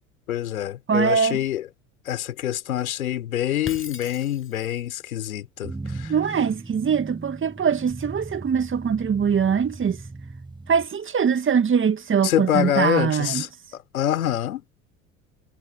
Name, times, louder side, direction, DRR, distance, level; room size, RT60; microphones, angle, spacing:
voice 1, 0.3-1.7 2.1-6.1 12.2-14.6, left 11 dB, 80° left, 3.5 m, -26 dB
voice 2, 0.9-1.4 6.1-10.0 10.7-13.4, right 7 dB, 30° right, 2.0 m, -22 dB
Shatter, 3.7-4.9, left 6 dB, 30° left, 6.5 m, -39 dB
sound 1, 5.6-10.9, right 3 dB, 10° right, 2.9 m, -38 dB
hypercardioid pair, 70°, 42 cm